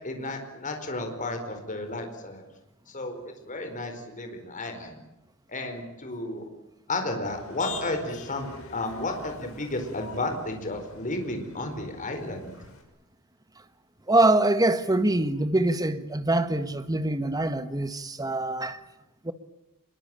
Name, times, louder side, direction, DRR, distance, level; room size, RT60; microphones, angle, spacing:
voice 1, 0.0-2.4 2.9-3.2 3.4-5.0 5.5-6.4 6.9-12.6, left 2 dB, 35° left, 4.5 m, -32 dB
Motor vehicle (road), 7.2-12.8, left 4 dB, 70° left, 6.3 m, -45 dB
voice 2, 14.1-18.8 19.2-19.3, right 2 dB, 15° right, 1.5 m, -24 dB
25.5 x 22.0 x 8.9 m
head